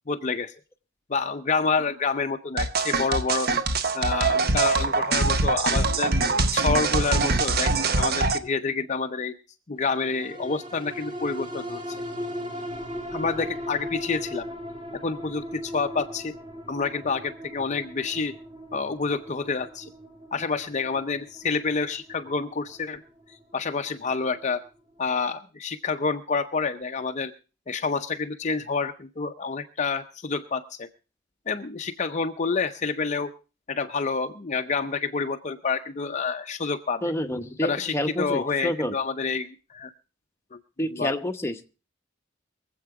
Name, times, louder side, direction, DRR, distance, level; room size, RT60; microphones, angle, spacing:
voice 1, 0.1-0.5 1.1-3.5 3.9-6.1 6.5-9.3 9.7-11.8 13.1-14.5 15.0-16.3 16.7-18.3 18.7-19.9 20.3-23.0 23.3-24.6 25.0-27.3 27.7-30.9 31.5-33.3 33.7-37.0 37.6-39.9 40.5-40.6 41.0-41.1, left 4 dB, 35° left, 7 dB, 0.6 m, -28 dB
sound 1, 2.6-8.4, right 3 dB, 50° right, 0.9 m, -23 dB
sound 2, 9.9-24.6 25.0-25.1, equal, 25° right, 2.4 m, -38 dB
voice 2, 37.0-38.9 40.8-41.7, left 1 dB, 15° left, 5 dB, 0.9 m, -28 dB
23.0 x 7.9 x 4.7 m, 0.34 s
head